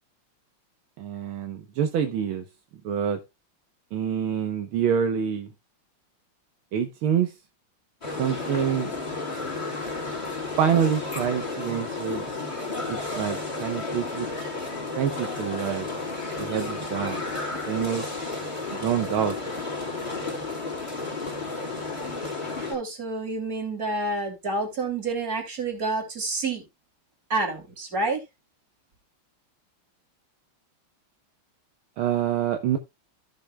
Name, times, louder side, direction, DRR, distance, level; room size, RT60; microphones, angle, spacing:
voice 1, 1.0-2.4 2.8-3.2 3.9-5.5 6.7-7.3 8.2-8.9 10.6-12.3 12.9-14.3 15.0-15.9 16.4-17.2 17.7-18.1 18.7-19.4 32.0-32.8, right 8 dB, 75° right, 1.7 m, -26 dB
sound 1, 8.0-22.7, left 3 dB, 20° left, 3.8 m, -32 dB
voice 2, 22.7-26.6 27.3-28.2, right 3 dB, 40° right, 3.3 m, -28 dB
14.5 x 6.8 x 2.2 m
omnidirectional pair, 2.4 m